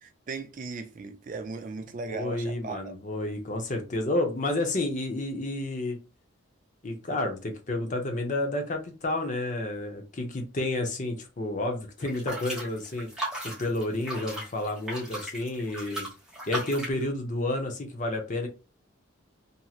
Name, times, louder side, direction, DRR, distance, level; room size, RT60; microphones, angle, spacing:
voice 1, 0.0-2.8, right 4 dB, 40° right, 0.4 m, -37 dB
voice 2, 2.1-6.0 6.8-13.1 13.6-16.1 16.5-18.5, left 2 dB, 40° left, 0.7 m, -30 dB
sound 1, 12.0-17.0, right 1 dB, 5° right, 1.2 m, -37 dB
3.0 x 2.7 x 2.3 m
head